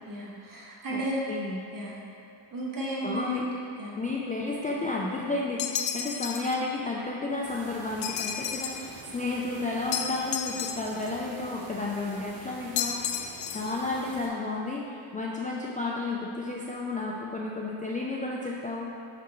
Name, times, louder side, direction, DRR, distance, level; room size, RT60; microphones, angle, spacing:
voice 1, 0.1-1.2 1.7-1.9 2.5-3.4 3.8-3.9, equal, 40° right, -5 dB, 1.5 m, -33 dB
voice 2, 1.3-1.6 3.0-3.4 4.0-18.9, left 3 dB, 20° left, -3 dB, 0.3 m, -32 dB
sound 1, 5.6-6.6 8.0-8.9 9.9-11.1 12.8-13.8, left 8 dB, 65° left, 0.5 m, -32 dB
sound 2, 7.4-14.3, right 3 dB, 70° right, 1.1 m, -46 dB
6.0 x 5.9 x 3.0 m, 2.8 s
cardioid pair, 115°, 48 cm